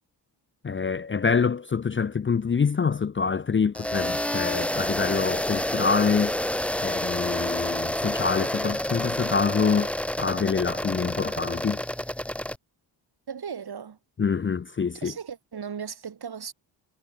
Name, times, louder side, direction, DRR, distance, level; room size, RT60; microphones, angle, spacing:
voice 1, 0.6-6.3 6.8-11.8 14.2-15.1, left 5 dB, 25° left, 0.6 m, -26 dB
sound 1, 3.7-12.6, left 1 dB, 5° left, 1.1 m, -29 dB
voice 2, 13.3-14.0 15.0-16.5, right 7 dB, 55° right, 4.0 m, -36 dB
cardioid pair, 65°, 45 cm